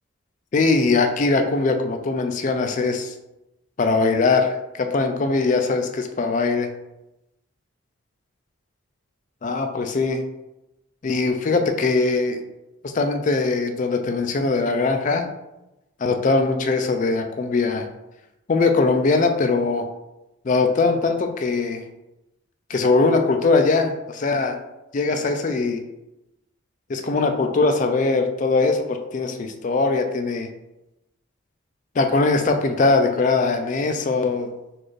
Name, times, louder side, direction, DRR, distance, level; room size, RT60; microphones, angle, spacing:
voice 1, 0.5-3.1 3.8-6.7 9.4-10.2 11.0-12.4 12.9-15.3 16.0-17.9 18.5-19.9 20.4-21.8 22.7-24.6 24.9-25.8 26.9-30.5 32.0-34.5, left 3 dB, 35° left, 6 dB, 0.3 m, -21 dB
4.2 x 2.5 x 3.1 m, 0.94 s
head